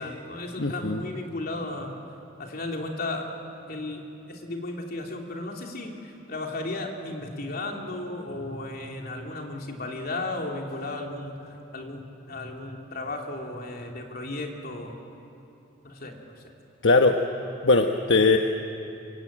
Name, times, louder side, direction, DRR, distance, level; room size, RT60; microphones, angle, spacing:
voice 1, 0.0-2.0 2.4-3.3 3.7-15.0 15.8-16.4, left 2 dB, 55° left, 1 dB, 3.3 m, -35 dB
voice 2, 0.6-1.0 16.8-17.2 17.6-18.4, left 3 dB, 75° left, 4 dB, 1.1 m, -20 dB
26.5 x 24.5 x 9.0 m, 2.8 s
head